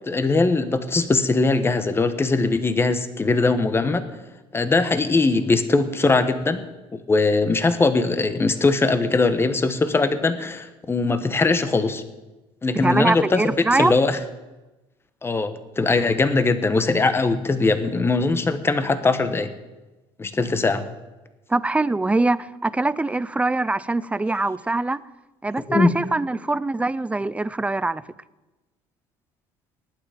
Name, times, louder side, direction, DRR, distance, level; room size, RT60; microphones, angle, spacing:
voice 1, 0.1-4.1 4.5-6.6 7.1-12.0 12.6-14.2 15.2-19.5 20.2-20.9 25.7-26.0, left 3 dB, 20° left, 11 dB, 1.1 m, -21 dB
voice 2, 12.8-13.9 21.5-25.0 25.4-28.0, right 2 dB, 10° right, 18 dB, 0.4 m, -23 dB
19.0 x 9.0 x 5.1 m, 1.1 s
supercardioid pair, 105°, 13 cm